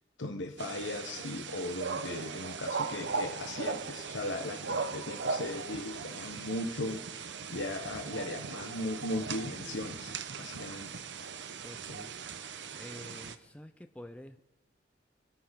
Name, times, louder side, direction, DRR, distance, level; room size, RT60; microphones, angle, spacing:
voice 1, 0.2-10.9, left 2 dB, 80° left, 4 dB, 1.1 m, -38 dB
sound 1, 0.6-13.4, right 5 dB, 70° right, 0.8 m, -38 dB
voice 2, 11.6-12.1 12.7-14.4, left 1 dB, 5° left, 8 dB, 0.5 m, -48 dB
24.0 x 9.8 x 5.2 m, 1.0 s
head